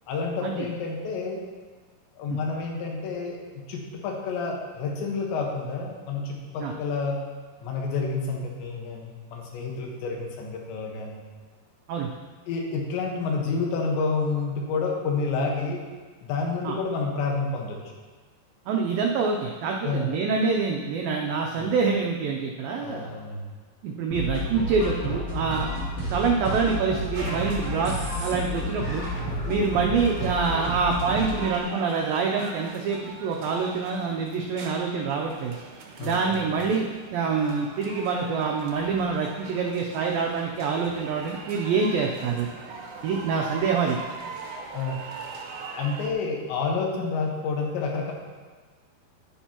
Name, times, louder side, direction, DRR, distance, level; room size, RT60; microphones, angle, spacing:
voice 1, 0.1-1.4 2.2-7.2 7.6-11.2 12.5-15.9 16.2-17.8 19.8-20.2 21.6-21.7 22.8-23.5 29.3-29.6 36.0-36.5 44.7-45.0 45.8-48.1, left 4 dB, 85° left, 0 dB, 3.6 m, -29 dB
voice 2, 18.7-23.1 23.8-25.7 26.1-27.9 28.2-29.0 29.5-35.5 36.0-42.5 43.0-44.0, right 5 dB, 85° right, 0 dB, 2.0 m, -26 dB
sound 1, 24.1-31.5, equal, 30° left, 2.9 m, -31 dB
sound 2, 27.1-46.1, right 4 dB, 70° right, 1.9 m, -41 dB
11.0 x 9.9 x 3.0 m, 1.4 s
omnidirectional pair, 5.0 m